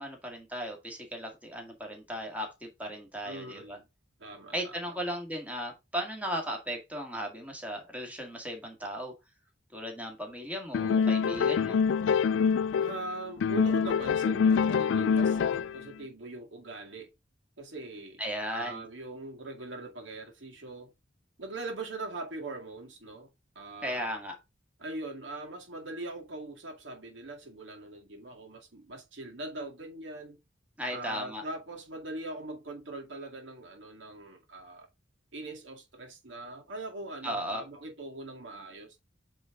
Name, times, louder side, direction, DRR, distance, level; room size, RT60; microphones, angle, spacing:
voice 1, 0.0-3.8 4.5-9.1 9.7-11.8 18.2-18.9 23.8-24.4 30.8-31.4 37.2-37.6, equal, 10° right, 2.0 m, -36 dB
voice 2, 3.2-3.8 4.2-4.8 12.8-17.1 17.6-18.2 18.5-20.9 21.4-23.3 23.6-24.1 24.8-30.4 30.9-34.9 35.3-39.0, right 2 dB, 75° right, 2.1 m, -41 dB
sound 1, 10.7-13.1 13.4-15.8, left 6 dB, 75° left, 0.3 m, -25 dB
8.8 x 3.8 x 3.7 m
head